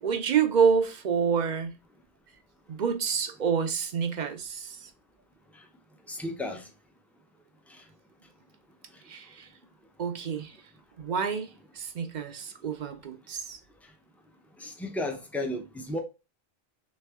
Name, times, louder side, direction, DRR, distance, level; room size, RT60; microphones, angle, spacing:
voice 1, 0.0-1.7 2.7-4.9 9.1-9.5 10.0-10.6 11.0-13.6, right 6 dB, 55° right, 0.6 m, -28 dB
voice 2, 6.1-6.7 7.7-7.8 14.6-16.0, left 1 dB, ahead, 0.4 m, -34 dB
3.4 x 3.2 x 3.4 m
omnidirectional pair, 1.1 m